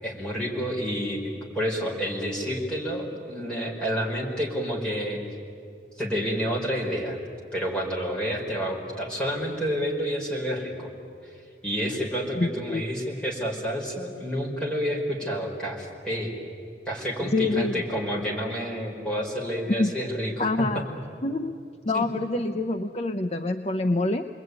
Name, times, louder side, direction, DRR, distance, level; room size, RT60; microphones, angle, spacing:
voice 1, 0.0-5.2 6.0-7.2 7.5-10.9 11.2-11.3 11.6-16.3 16.9-20.7 21.9-22.1, equal, 5° left, -3 dB, 5.0 m, -29 dB
voice 2, 12.3-12.8 17.3-17.8 19.7-19.9 20.4-20.9 21.2-21.6 21.9-24.3, left 2 dB, 35° left, 6 dB, 0.7 m, -26 dB
29.0 x 21.0 x 9.6 m, 2.4 s
head